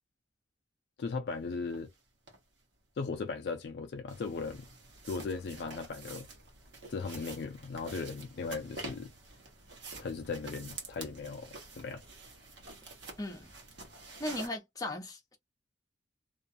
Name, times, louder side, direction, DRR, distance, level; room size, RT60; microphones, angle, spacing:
voice 1, 1.0-1.9 3.0-4.7 5.0-6.3 6.9-9.1 10.0-12.0, left 4 dB, 55° left, 0.3 m, -37 dB
sound 1, 1.7-1.8 2.3-2.4 4.1-14.5, right 3 dB, 65° right, 1.0 m, -48 dB
voice 2, 13.2-13.5 14.2-15.4, left 1 dB, 20° left, 0.7 m, -37 dB
2.5 x 2.2 x 2.5 m
head